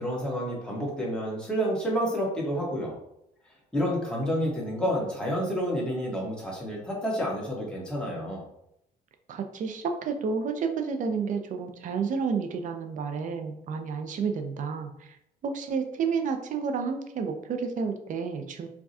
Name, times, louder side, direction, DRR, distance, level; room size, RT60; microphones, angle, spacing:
voice 1, 0.0-2.9 3.7-8.4, equal, 5° left, -4 dB, 1.3 m, -29 dB
voice 2, 9.3-14.9 15.4-18.7, right 5 dB, 50° right, 5 dB, 0.6 m, -30 dB
4.7 x 2.3 x 2.7 m, 0.78 s
cardioid pair, 110°, 17 cm